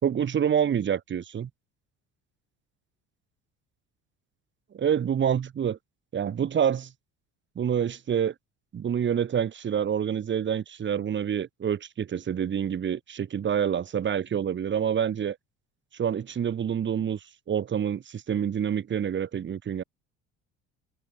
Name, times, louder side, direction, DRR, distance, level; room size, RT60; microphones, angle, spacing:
voice 1, 0.0-1.5 4.7-5.8 6.1-6.9 7.6-8.3 8.7-15.4 15.9-17.2 17.5-19.8, right 8 dB, 40° right, 3.9 m, -27 dB
cardioid pair, 125°, 30 cm